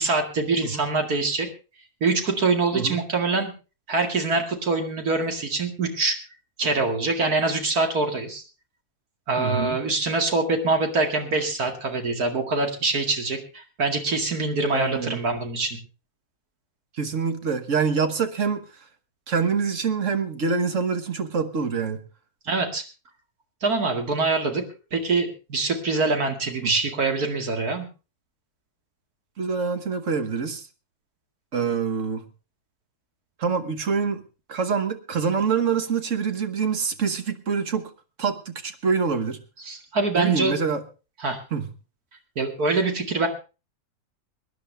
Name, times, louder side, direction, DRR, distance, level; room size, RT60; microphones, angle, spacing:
voice 1, 0.0-1.5 2.0-3.5 3.9-6.2 6.6-8.4 9.3-15.8 22.5-22.8 23.6-24.6 24.9-27.8 39.7-40.5 41.2-41.4 42.4-43.3, right 3 dB, 90° right, 4 dB, 2.7 m, -24 dB
voice 2, 9.4-9.8 14.7-15.2 17.0-18.7 19.3-22.0 26.6-26.7 29.4-30.7 31.5-32.3 33.4-34.2 34.5-37.9 38.2-39.4 40.1-40.8 41.5-41.7, right 5 dB, 55° right, 8 dB, 1.6 m, -25 dB
23.0 x 10.5 x 3.3 m, 0.32 s
omnidirectional pair, 1.5 m